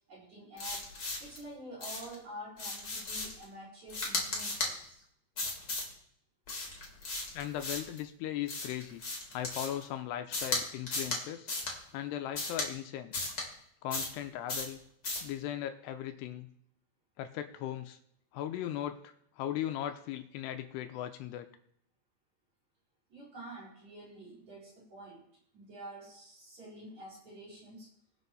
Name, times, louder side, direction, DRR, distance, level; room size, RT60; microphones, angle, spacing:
voice 1, 0.1-0.8 1.2-5.0 23.1-25.2 25.5-27.9, right 1 dB, 40° right, -8 dB, 6.6 m, -48 dB
sound 1, 0.6-1.4 1.8-2.2 2.6-3.4 3.9-4.7 5.4-5.9 6.5-8.0 8.5-9.8 10.3-10.6 10.9-11.2 11.5-11.7 12.3-12.7 13.1-13.4 13.9-14.2 14.5-14.7 15.0-15.3, left 2 dB, 30° left, 1.8 m, -36 dB
voice 2, 7.3-9.0 9.3-11.5 11.9-13.1 13.8-14.8 15.2-16.5 17.2-18.0 18.3-21.5, left 11 dB, 85° left, 8 dB, 2.7 m, -38 dB
20.5 x 6.9 x 4.1 m, 0.70 s
omnidirectional pair, 4.9 m